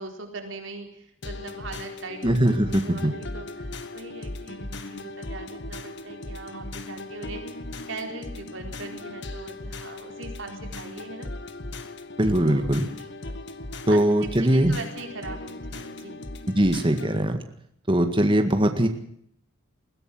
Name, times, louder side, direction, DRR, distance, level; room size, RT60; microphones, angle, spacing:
voice 1, 0.0-7.6 7.9-11.3 12.3-13.2 13.9-16.2, right 3 dB, 65° right, 3 dB, 4.4 m, -40 dB
sound 1, 1.2-17.2, left 2 dB, 55° left, 1.8 m, -38 dB
voice 2, 2.2-3.1 12.2-12.9 13.9-14.7 16.5-17.4 17.9-18.9, right 1 dB, 25° right, 6 dB, 1.9 m, -21 dB
21.5 x 16.0 x 7.8 m, 0.68 s
head